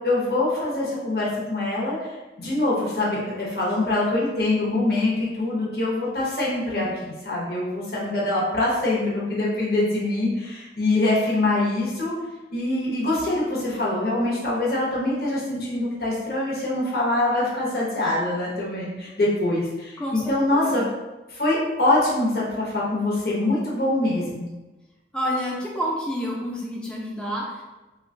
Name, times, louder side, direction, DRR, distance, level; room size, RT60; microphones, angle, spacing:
voice 1, 0.0-12.1 12.5-20.8 21.3-24.5, left 2 dB, 55° left, -6 dB, 0.9 m, -24 dB
voice 2, 20.0-20.8 25.1-27.6, equal, 5° left, -4 dB, 0.5 m, -29 dB
2.9 x 2.3 x 3.7 m, 1.1 s
head